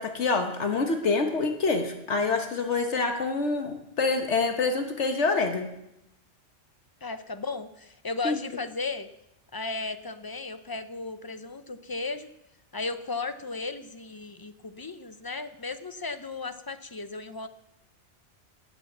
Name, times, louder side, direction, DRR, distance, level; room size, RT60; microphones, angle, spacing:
voice 1, 0.0-5.7 8.2-8.4, left 3 dB, 75° left, 5 dB, 1.5 m, -26 dB
voice 2, 7.0-9.1 9.5-12.3 12.7-17.5, left 3 dB, 25° left, 11 dB, 0.6 m, -35 dB
18.0 x 7.8 x 7.2 m, 0.87 s
omnidirectional pair, 1.2 m